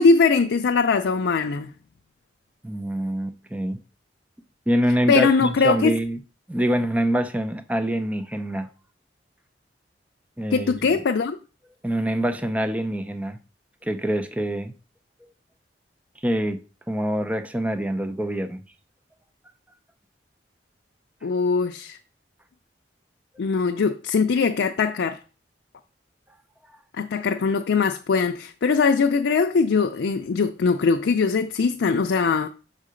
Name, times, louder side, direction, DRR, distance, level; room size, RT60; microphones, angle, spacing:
voice 1, 0.0-1.7 5.1-6.0 10.5-11.4 21.2-22.0 23.4-25.2 27.0-32.5, left 4 dB, 85° left, 0.4 m, -21 dB
voice 2, 2.6-3.8 4.7-6.2 6.5-8.7 10.4-11.0 11.8-13.4 13.8-14.7 16.2-16.6 16.9-18.6, equal, 10° right, 0.4 m, -25 dB
6.5 x 3.8 x 5.0 m
head